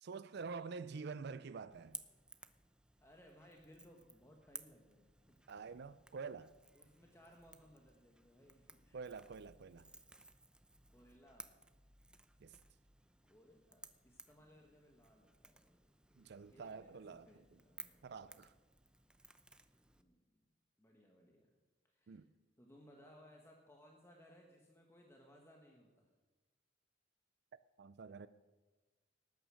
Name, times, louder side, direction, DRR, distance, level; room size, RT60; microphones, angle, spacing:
voice 1, 0.0-2.0 5.5-6.5 8.9-9.9 12.4-12.5 16.2-17.3 18.0-18.5 22.1-22.3 27.8-28.3, right 5 dB, 60° right, 0.5 m, -47 dB
Crackle / Crack, 1.7-20.0, right 2 dB, 5° right, 0.7 m, -58 dB
voice 2, 3.0-5.4 6.7-9.0 10.9-11.6 13.2-15.8 16.1-18.5 19.9-20.5 20.8-21.5 21.8-22.2 22.6-26.1, equal, 15° left, 1.5 m, -64 dB
19.0 x 9.3 x 6.4 m
head